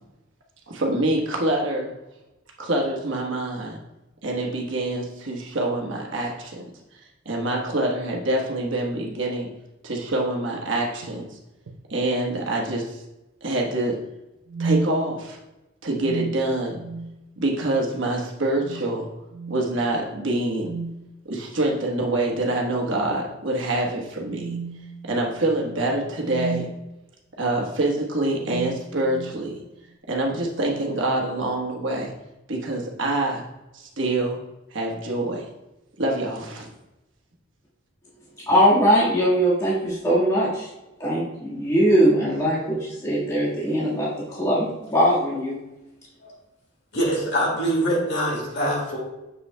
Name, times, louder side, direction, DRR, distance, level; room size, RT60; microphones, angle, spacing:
voice 1, 0.7-1.9 2.6-3.8 4.2-6.7 7.2-9.5 9.8-11.4 11.9-13.0 13.4-14.0 14.6-15.4 15.8-16.8 17.4-19.1 19.5-20.7 21.2-24.5 25.0-26.7 27.4-29.6 30.1-32.1 32.5-33.4 33.7-34.4 34.7-35.5 36.0-36.7, right 2 dB, 65° right, -1 dB, 1.2 m, -25 dB
sound 1, 11.0-11.2 11.7-11.8 12.4-12.9 14.5-15.0 16.0-17.2 17.6-17.9 18.5-19.0 19.3-19.6 20.6-21.1 22.3-22.8 23.2-23.4 24.2-26.8 27.7-27.9 28.4-29.4, right 4 dB, 90° right, 0.6 m, -33 dB
voice 2, 38.5-40.7 41.0-45.6, equal, 15° left, -9 dB, 1.6 m, -21 dB
voice 3, 46.9-49.0, equal, 55° left, -2 dB, 2.2 m, -24 dB
6.9 x 6.9 x 2.2 m, 0.98 s
head